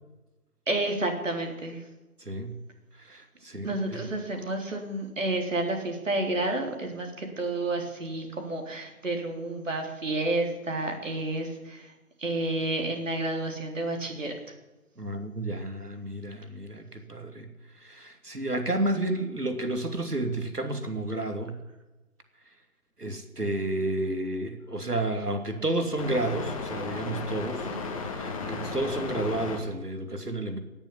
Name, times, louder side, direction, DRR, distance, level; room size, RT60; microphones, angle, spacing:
voice 1, 0.7-1.9 3.6-11.9 12.2-14.3 27.6-27.7, right 2 dB, 55° right, 3 dB, 3.8 m, -30 dB
voice 2, 2.2-2.6 3.0-4.0 15.0-17.5 17.7-21.6 23.0-27.7 28.0-30.6, right 1 dB, 90° right, 7 dB, 2.9 m, -31 dB
sound 1, 26.0-29.6, left 4 dB, 20° left, 1.8 m, -34 dB
17.5 x 7.3 x 9.9 m, 1.1 s
figure-of-eight pair, 155°, 45 cm